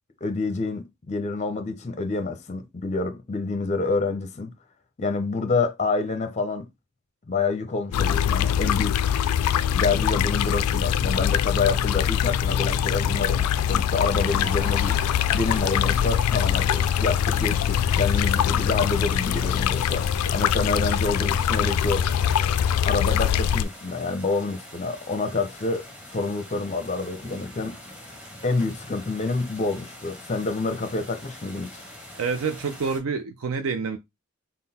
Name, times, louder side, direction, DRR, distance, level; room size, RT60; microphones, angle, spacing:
voice 1, 0.2-4.5 5.0-6.7 7.3-9.1 9.7-15.0 15.3-22.1 22.9-25.8 26.1-27.8 28.4-31.8, left 3 dB, 30° left, 0.5 m, -27 dB
sound 1, 7.9-23.6, left 9 dB, 90° left, 0.3 m, -23 dB
sound 2, 14.2-33.0, left 1 dB, 5° right, 0.9 m, -43 dB
voice 2, 32.2-34.0, right 5 dB, 65° right, 0.4 m, -27 dB
3.8 x 2.0 x 4.0 m
head